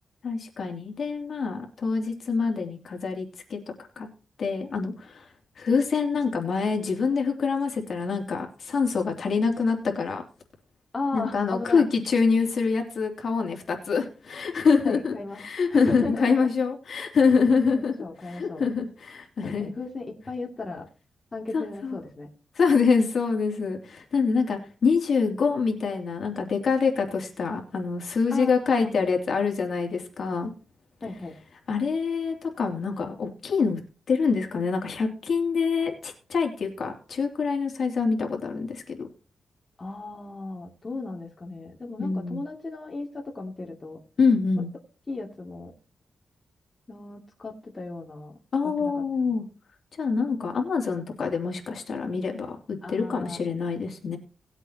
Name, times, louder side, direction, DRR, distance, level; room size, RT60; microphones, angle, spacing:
voice 1, 0.2-3.6 4.0-4.1 4.4-5.3 5.6-10.2 11.1-17.9 18.2-19.7 21.5-22.0 22.5-30.5 31.7-33.8 34.1-39.1 42.0-42.4 44.2-44.7 48.5-49.4 50.0-54.2, left 5 dB, 55° left, 2 dB, 2.8 m, -25 dB
voice 2, 10.9-11.8 14.8-15.4 15.7-16.4 17.7-18.6 19.4-20.9 21.3-22.3 28.3-29.1 31.0-31.3 39.8-44.0 45.1-45.7 46.9-48.4 48.6-49.3 52.8-53.6, left 3 dB, 25° left, 0 dB, 2.6 m, -35 dB
19.0 x 8.1 x 2.9 m, 0.36 s
wide cardioid pair, 135°, 0 cm